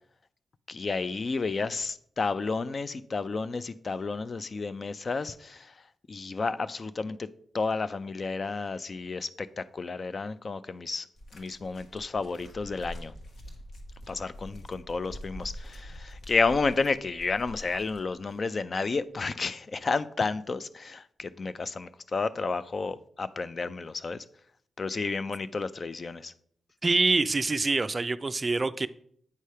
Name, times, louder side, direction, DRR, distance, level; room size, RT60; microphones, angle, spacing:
voice 1, 0.7-5.7 6.1-7.3 7.5-11.1 11.3-13.1 14.1-24.2 24.8-26.3, left 4 dB, 45° left, 0.4 m, -31 dB
sound 1, 11.2-18.4 19.2-19.3, equal, 65° left, 1.2 m, -45 dB
voice 2, 26.8-28.9, right 3 dB, 30° right, 0.3 m, -25 dB
8.3 x 3.3 x 5.5 m
cardioid pair, 75°, 0 cm